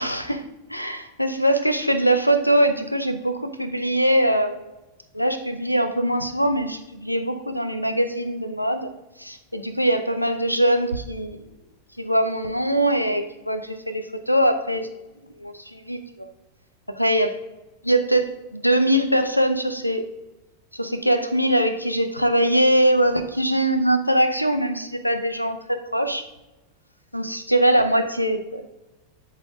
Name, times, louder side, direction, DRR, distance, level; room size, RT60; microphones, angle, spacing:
voice 1, 0.0-4.7 5.1-8.9 9.2-11.4 12.0-15.0 15.4-16.3 17.0-17.4 17.8-20.1 20.7-26.2 27.1-28.6, right 1 dB, 90° left, 9 dB, 0.6 m, -22 dB
12.5 x 5.6 x 2.3 m, 0.99 s
figure-of-eight pair, 90°, 0 cm